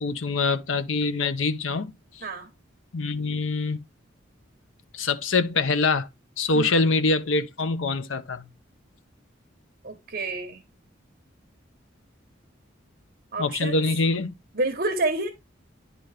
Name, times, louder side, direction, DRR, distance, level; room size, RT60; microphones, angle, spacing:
voice 1, 0.0-2.2 2.9-3.8 4.9-6.1 6.4-8.5 13.4-14.3, left 3 dB, 85° left, 0.8 m, -24 dB
voice 2, 9.8-10.6 13.3-13.8 14.5-15.3, right 2 dB, 45° right, 1.0 m, -28 dB
10.5 x 4.1 x 3.3 m
head